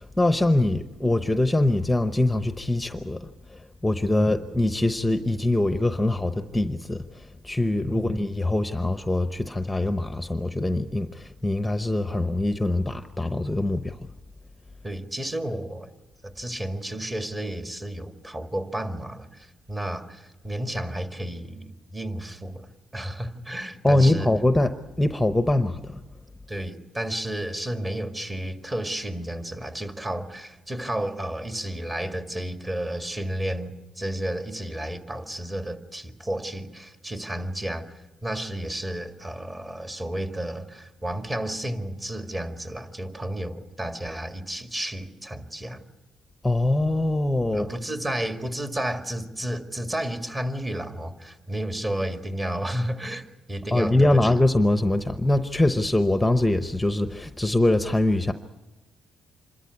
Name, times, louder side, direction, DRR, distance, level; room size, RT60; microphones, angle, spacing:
voice 1, 0.0-14.0 23.8-26.0 46.4-47.7 53.7-58.3, left 1 dB, 10° left, 9 dB, 0.9 m, -23 dB
voice 2, 14.8-15.9 16.2-24.3 26.5-37.9 38.2-45.8 47.5-54.3, right 1 dB, 20° right, 6 dB, 2.0 m, -32 dB
26.5 x 13.0 x 9.7 m, 1.1 s
cardioid pair, 90°, 0 cm